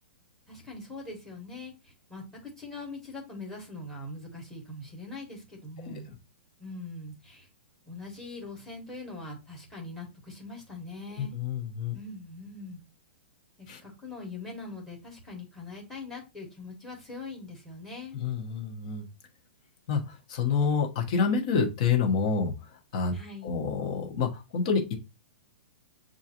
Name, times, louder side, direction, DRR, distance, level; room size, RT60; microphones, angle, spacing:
voice 1, 0.5-6.1 6.6-7.5 7.9-11.3 11.9-12.8 13.8-18.2 23.1-23.6, left 2 dB, 5° left, 1 dB, 1.3 m, -42 dB
voice 2, 11.2-11.9 13.7-13.8 18.1-19.1 19.9-22.5 22.9-23.1 23.4-24.9, left 5 dB, 35° left, 2 dB, 1.0 m, -28 dB
7.3 x 2.5 x 2.8 m, 0.27 s
hypercardioid pair, 170°, 6 cm